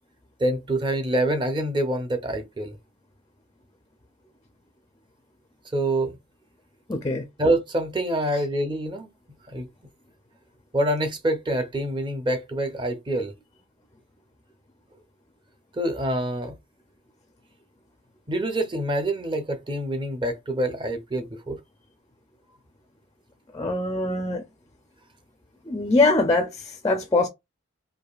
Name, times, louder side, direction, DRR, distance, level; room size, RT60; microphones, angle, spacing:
voice 1, 0.4-2.8 5.7-6.2 7.4-9.1 9.5-9.7 10.7-13.3 15.7-16.6 18.3-21.6, right 1 dB, 25° right, 0.6 m, -26 dB
voice 2, 6.9-7.2 23.5-24.4 25.7-27.3, left 2 dB, 15° left, 0.4 m, -23 dB
4.7 x 2.6 x 2.3 m
head